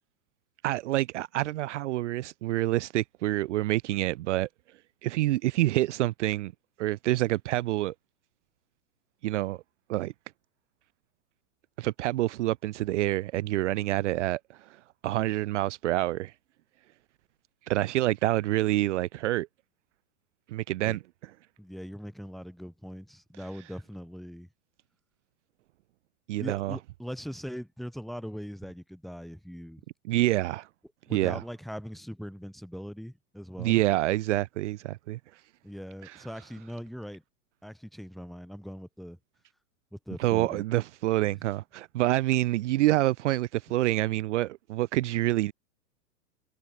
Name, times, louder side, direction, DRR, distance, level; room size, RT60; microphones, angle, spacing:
voice 1, 0.6-4.5 5.0-6.5 6.8-7.9 9.2-9.6 9.9-10.1 11.8-16.3 17.7-19.5 20.5-21.0 26.3-26.8 30.1-30.7 31.1-31.4 33.6-35.2 36.0-36.2 40.2-45.5, right 16 dB, 50° right, 1.0 m, -27 dB
voice 2, 21.6-24.5 26.4-29.8 31.1-33.8 35.6-37.2 37.6-39.2 39.9-40.6, equal, ahead, 5.6 m, -40 dB
hypercardioid pair, 155°, 46 cm